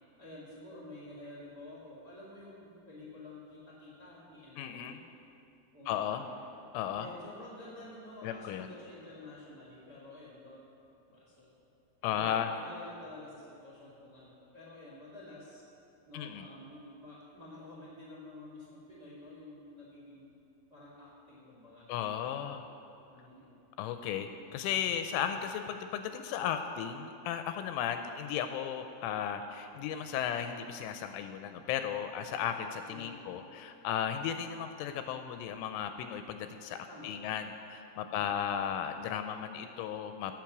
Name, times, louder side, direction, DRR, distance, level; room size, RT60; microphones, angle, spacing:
voice 1, 0.2-5.0 5.7-6.6 6.9-10.7 11.1-11.5 12.1-15.6 16.0-20.3 20.7-22.3 23.1-23.6 32.8-33.4 36.9-37.5 38.1-38.4, left 2 dB, 45° right, -5 dB, 1.4 m, -50 dB
voice 2, 4.6-5.0 5.9-6.2 6.7-7.1 8.2-8.7 12.0-12.5 16.1-16.5 21.9-22.6 23.8-40.4, left 9 dB, 85° left, 8 dB, 2.9 m, -35 dB
16.5 x 7.5 x 6.0 m, 2.8 s
omnidirectional pair, 5.8 m